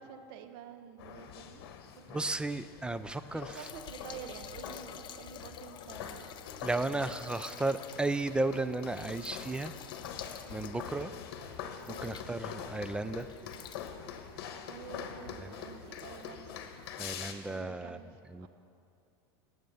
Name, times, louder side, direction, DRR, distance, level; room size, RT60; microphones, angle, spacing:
voice 1, 0.0-1.7 1.9-2.3 3.3-6.3 6.8-7.1 7.9-8.1 10.4-10.7 11.9-12.1 14.7-16.6 17.5-18.5, right 8 dB, 70° right, 8 dB, 1.1 m, -49 dB
sound 1, 1.0-17.3, left 7 dB, 75° left, 1.2 m, -45 dB
voice 2, 2.1-3.6 6.6-9.7 10.5-11.1 11.9-13.3 15.4-15.5 17.0-18.0 18.3-18.5, right 2 dB, 5° right, 12 dB, 0.4 m, -34 dB
sound 2, 3.5-12.7 13.2-13.9 14.8-14.9 15.3-15.4 15.9-16.3 17.3-17.4, left 10 dB, 35° left, 0.6 m, -50 dB
18.0 x 7.8 x 5.5 m, 2.6 s
supercardioid pair, 120°, 13 cm